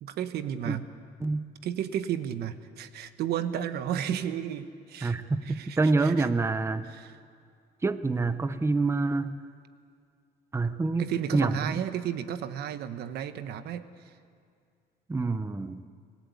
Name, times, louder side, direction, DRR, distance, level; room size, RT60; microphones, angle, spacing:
voice 1, 0.0-0.9 1.6-6.3 6.9-7.2 11.0-14.2, right 10 dB, 70° right, 11 dB, 1.2 m, -33 dB
voice 2, 5.0-6.9 7.8-9.4 10.5-11.8 15.1-15.8, right 3 dB, 15° right, 12 dB, 0.8 m, -27 dB
27.0 x 17.5 x 8.4 m, 2.2 s
cardioid pair, 110°, 17 cm